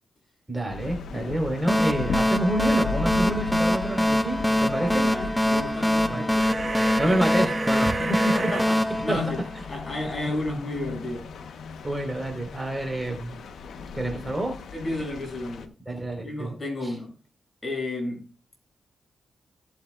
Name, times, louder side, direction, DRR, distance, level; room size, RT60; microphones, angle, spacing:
voice 1, 0.5-5.1 6.1-6.3 6.7-8.0 8.2-8.4 8.7-8.8 9.1-9.2 11.8-13.4 13.9-14.5 15.9-16.5, right 1 dB, 10° right, 4.1 m, -28 dB
sound 1, 0.7-15.7, left 4 dB, 75° left, 1.0 m, -37 dB
sound 2, 1.7-10.0, left 1 dB, 5° left, 0.7 m, -24 dB
voice 2, 4.7-6.5 8.0-9.4 9.7-11.3 14.7-15.7 16.2-17.1 17.6-18.3, left 2 dB, 35° left, 6.7 m, -32 dB
sound 3, 6.4-8.6, right 3 dB, 35° right, 5.7 m, -31 dB
18.0 x 8.3 x 2.4 m
cardioid pair, 65°, 0 cm